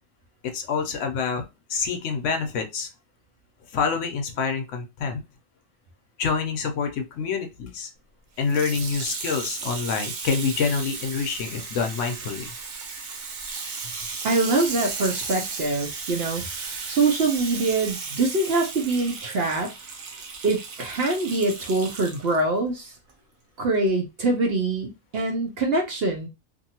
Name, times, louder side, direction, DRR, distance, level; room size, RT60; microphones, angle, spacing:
voice 1, 0.4-1.4 1.7-2.9 3.7-5.2 6.2-7.9 8.4-12.5, left 5 dB, 70° left, 0.9 m, -27 dB
Water tap faucet / Sink (filling or washing), 8.4-22.4 23.1-23.2, right 4 dB, 80° right, 1.1 m, -35 dB
voice 2, 14.2-16.4 16.9-19.7 20.4-22.9 23.6-26.3, right 3 dB, 55° right, 0.7 m, -24 dB
2.7 x 2.6 x 2.8 m
omnidirectional pair, 1.4 m